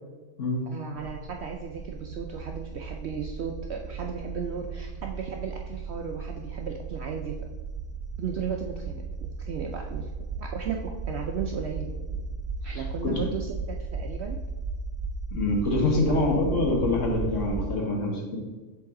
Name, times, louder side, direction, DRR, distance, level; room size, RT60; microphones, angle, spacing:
voice 1, 0.7-7.3 8.2-9.0 9.4-10.1 10.4-11.9 12.6-14.4 16.1-16.3, right 6 dB, 65° right, 2 dB, 0.7 m, -35 dB
sound 1, 1.0-17.8, right 4 dB, 80° right, 1.1 m, -35 dB
voice 2, 12.7-13.2 15.3-18.4, left 2 dB, 60° left, 0 dB, 1.4 m, -26 dB
7.2 x 3.9 x 3.6 m, 1.3 s
omnidirectional pair, 1.5 m